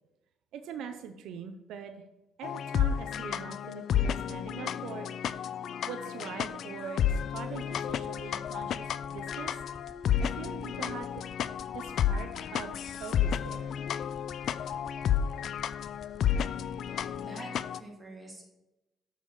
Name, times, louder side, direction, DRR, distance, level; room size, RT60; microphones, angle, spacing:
voice 1, 0.5-2.0 2.4-5.3 5.9-9.6 10.2-11.2 11.7-13.7, right 7 dB, 85° right, 7 dB, 0.6 m, -43 dB
sound 1, 2.4-17.8, left 9 dB, 70° left, 0.3 m, -32 dB
sound 2, 7.6-17.2, left 2 dB, 25° left, 0.7 m, -50 dB
voice 2, 16.8-17.5 17.8-18.5, right 1 dB, 15° right, -2 dB, 2.9 m, -46 dB
7.2 x 4.8 x 5.6 m, 0.98 s
cardioid pair, 90°, 0 cm